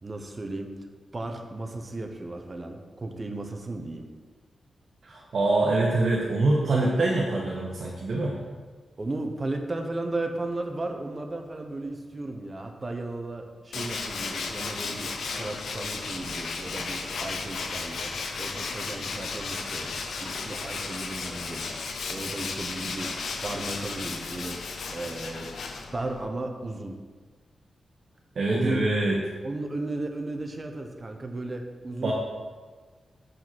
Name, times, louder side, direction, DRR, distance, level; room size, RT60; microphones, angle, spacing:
voice 1, 0.0-0.8 1.1-4.1 9.0-18.1 18.4-21.8 22.1-24.6 24.9-25.5 25.9-27.0 28.5-28.8 29.4-32.1, right 2 dB, 25° right, 4 dB, 0.9 m, -35 dB
voice 2, 5.0-8.4 28.3-29.2 32.0-32.1, right 2 dB, 55° right, -3 dB, 1.2 m, -24 dB
Tools, 13.7-26.2, left 4 dB, 80° left, 0.8 m, -34 dB
7.3 x 5.5 x 6.0 m, 1.4 s
wide cardioid pair, 150°, 0 cm